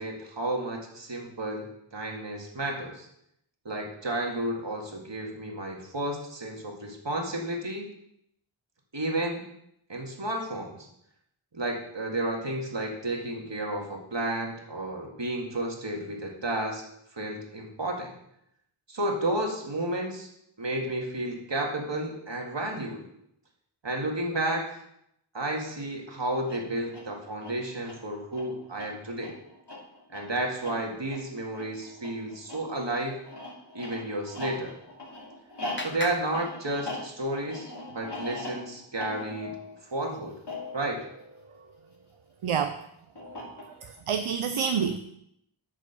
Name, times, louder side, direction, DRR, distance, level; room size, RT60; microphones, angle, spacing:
voice 1, 0.0-3.1 3.7-7.9 8.9-9.5 9.9-10.9 11.5-16.8 17.1-18.1 18.9-20.3 20.6-23.0 23.8-24.8 25.3-29.3 30.1-33.2 33.7-34.7 35.8-39.5 39.9-40.4 40.7-41.0, right 1 dB, 60° right, 0 dB, 2.1 m, -32 dB
sound 1, 26.4-42.1 43.2-44.0, left 2 dB, 55° left, 2.7 m, -41 dB
Clapping, 34.6-37.3, left 2 dB, 25° left, 1.2 m, -42 dB
voice 2, 42.4-42.8 44.1-45.0, right 7 dB, 80° right, 9 dB, 0.6 m, -27 dB
8.9 x 5.0 x 6.8 m, 0.76 s
wide cardioid pair, 50°, 50 cm